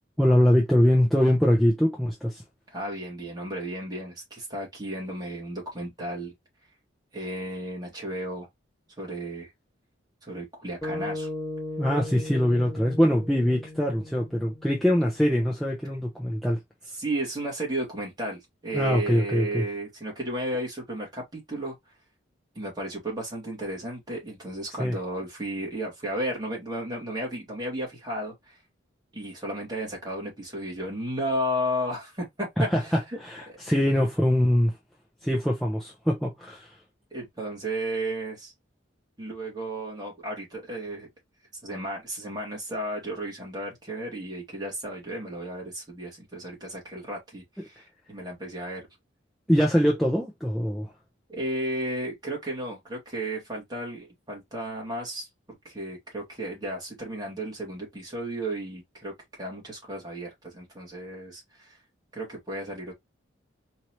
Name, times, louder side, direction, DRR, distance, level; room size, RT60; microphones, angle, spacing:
voice 1, 0.2-2.4 11.8-16.6 18.7-19.6 24.8-24.9 32.6-32.8 33.2-34.7 35.2-36.7 49.5-50.9, equal, ahead, 0.7 m, -23 dB
voice 2, 2.7-6.3 7.1-8.5 9.0-9.5 10.2-11.3 16.9-21.7 22.5-28.6 29.1-33.2 33.5-33.8 37.1-38.5 39.2-41.1 41.6-48.9 51.3-55.3 55.6-61.8 62.1-62.9, right 1 dB, 20° right, 2.2 m, -33 dB
sound 1, 10.8-15.2, left 1 dB, 15° left, 1.5 m, -37 dB
4.6 x 2.9 x 3.0 m
head